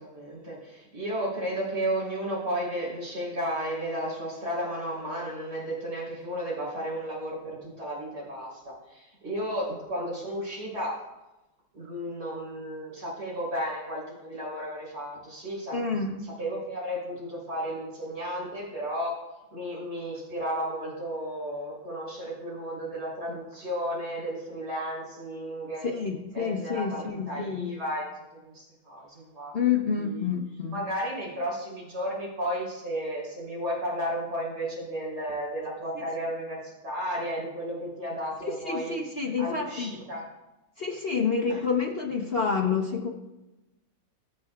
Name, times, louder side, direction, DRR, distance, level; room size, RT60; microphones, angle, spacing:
voice 1, 0.0-10.9 11.7-15.8 16.4-19.1 19.5-25.8 26.3-28.0 28.3-29.5 30.0-30.2 30.7-39.0 39.4-40.2 41.5-41.6, equal, 50° right, -5 dB, 4.3 m, -33 dB
voice 2, 15.7-16.1 25.8-27.7 29.5-30.9 38.4-40.0 40.8-43.1, left 5 dB, 50° left, -1 dB, 0.7 m, -28 dB
21.0 x 7.5 x 2.4 m, 1.0 s
omnidirectional pair, 2.3 m